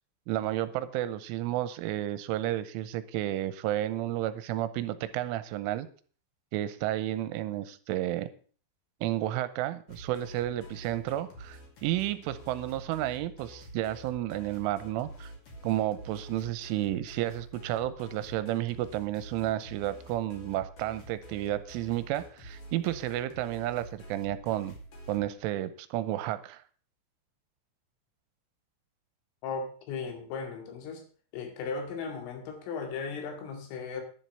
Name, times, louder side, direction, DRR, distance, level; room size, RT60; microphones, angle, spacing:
voice 1, 0.3-5.9 6.5-8.3 9.0-15.3 15.6-24.7 25.1-26.6, right 14 dB, 85° right, 14 dB, 3.2 m, -32 dB
sound 1, 9.9-25.3, right 1 dB, 45° left, 3.9 m, -47 dB
voice 2, 29.4-31.0 31.3-34.0, left 5 dB, 85° left, 5 dB, 4.8 m, -36 dB
11.0 x 7.5 x 6.7 m, 0.43 s
omnidirectional pair, 5.7 m